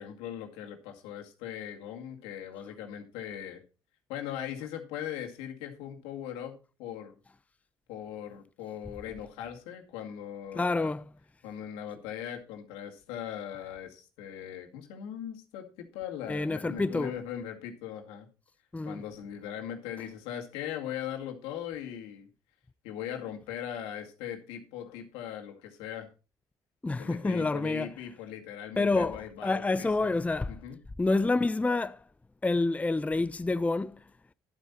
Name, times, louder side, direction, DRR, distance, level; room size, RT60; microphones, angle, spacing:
voice 1, 0.0-3.6 4.1-7.1 7.9-10.9 11.4-18.3 18.8-22.3 22.8-26.1 27.0-30.1 30.5-30.8, left 10 dB, 80° left, 2.2 m, -40 dB
voice 2, 10.5-11.1 16.3-17.2 18.7-19.0 26.8-27.9 28.8-30.5 31.0-32.0 32.4-34.0, left 3 dB, 15° left, 0.5 m, -28 dB
11.0 x 8.3 x 4.3 m
hypercardioid pair, 60°, 10 cm